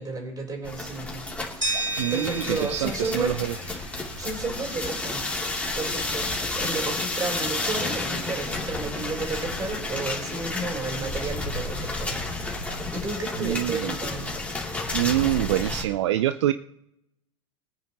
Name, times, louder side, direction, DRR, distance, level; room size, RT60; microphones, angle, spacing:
voice 1, 0.0-1.8 2.1-3.3 4.2-5.3 5.7-14.3, right 3 dB, 25° right, 2 dB, 4.3 m, -32 dB
sound 1, 0.6-15.8, left 2 dB, 10° left, 3.1 m, -31 dB
sound 2, 1.6-4.5, right 2 dB, 85° right, 3.3 m, -33 dB
voice 2, 2.0-3.5 13.4-13.9 14.9-16.5, right 14 dB, 65° right, 12 dB, 0.6 m, -25 dB
23.0 x 9.3 x 3.1 m, 0.80 s
figure-of-eight pair, 85°, 16 cm